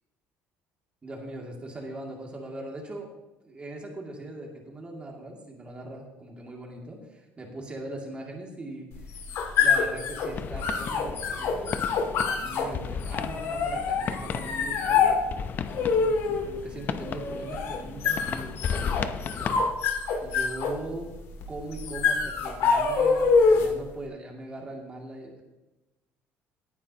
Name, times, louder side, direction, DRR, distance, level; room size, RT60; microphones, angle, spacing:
voice 1, 1.0-3.1 3.5-9.2 9.6-11.8 12.3-15.3 15.7-19.0 19.3-19.6 20.2-21.1 21.5-25.4, right 2 dB, 20° right, 0 dB, 2.3 m, -40 dB
sound 1, 8.9-23.8, left 5 dB, 65° left, 2.2 m, -26 dB
sound 2, 10.3-19.7, left 7 dB, 40° left, 0.6 m, -35 dB
18.0 x 9.4 x 2.9 m, 1.0 s
cardioid pair, 130°, 5 cm